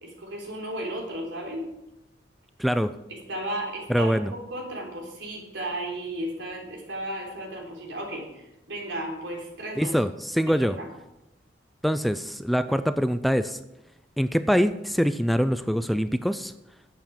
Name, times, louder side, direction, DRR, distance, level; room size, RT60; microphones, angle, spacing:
voice 1, 0.0-1.6 3.1-10.0 10.4-10.9, right 1 dB, 90° right, 0 dB, 3.7 m, -34 dB
voice 2, 2.6-3.0 3.9-4.3 9.8-10.8 11.8-13.6 14.2-16.5, equal, ahead, 12 dB, 0.3 m, -24 dB
11.5 x 8.0 x 5.9 m, 0.89 s
head